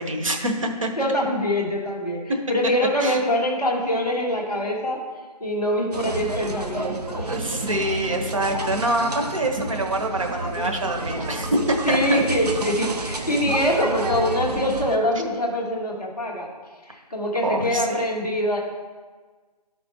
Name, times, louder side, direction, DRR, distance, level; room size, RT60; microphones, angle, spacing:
voice 1, 0.0-0.9 3.0-3.2 7.3-12.2 17.4-18.0, right 1 dB, 50° right, 3 dB, 1.3 m, -25 dB
voice 2, 1.0-2.2 2.5-5.0 5.4-7.5 11.9-16.5 16.9-18.6, left 1 dB, 5° right, -11 dB, 0.5 m, -24 dB
sound 1, 5.9-15.0, right 2 dB, 65° right, 1.0 m, -30 dB
12.0 x 4.2 x 4.4 m, 1.4 s
figure-of-eight pair, 160°, 21 cm